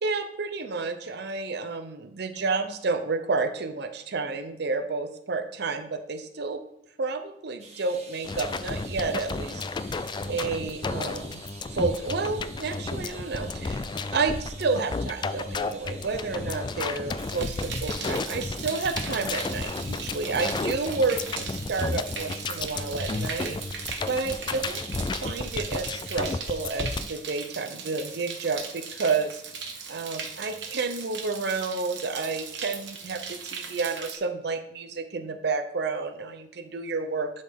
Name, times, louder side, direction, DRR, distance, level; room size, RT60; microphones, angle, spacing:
voice 1, 0.0-6.6 7.0-9.6 10.2-11.4 11.7-13.8 14.1-24.4 24.7-24.8 25.2-29.4 29.9-37.3, right 4 dB, 65° right, 8 dB, 0.6 m, -30 dB
sound 1, 7.6-27.0, right 3 dB, 40° right, 1.4 m, -48 dB
sound 2, 8.2-27.1, left 3 dB, 25° left, 0.3 m, -33 dB
sound 3, 17.2-34.2, right 5 dB, 90° right, 1.3 m, -38 dB
11.0 x 3.9 x 3.6 m, 0.73 s
head